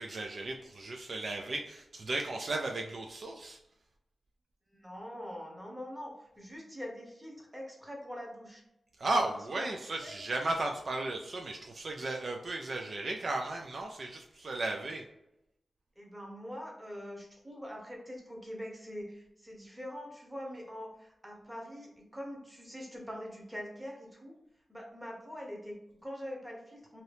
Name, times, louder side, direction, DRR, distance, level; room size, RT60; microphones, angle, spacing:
voice 1, 0.0-3.6 9.0-15.0, right 2 dB, 55° right, 2 dB, 0.3 m, -35 dB
voice 2, 4.7-8.6 9.0-10.1 16.0-24.3 24.7-27.0, equal, 10° right, -1 dB, 0.9 m, -44 dB
2.7 x 2.7 x 3.3 m, 0.86 s
wide cardioid pair, 105°, 0 cm